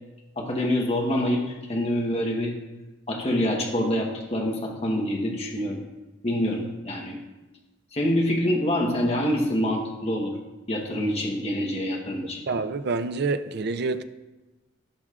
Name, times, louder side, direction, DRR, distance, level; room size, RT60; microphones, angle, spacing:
voice 1, 0.4-2.5 3.1-5.8 6.2-7.2 7.9-10.3 10.7-12.4, left 1 dB, 35° left, 1.1 m, -26 dB
voice 2, 12.5-14.0, right 3 dB, 60° right, 0.5 m, -27 dB
16.0 x 6.1 x 2.4 m
head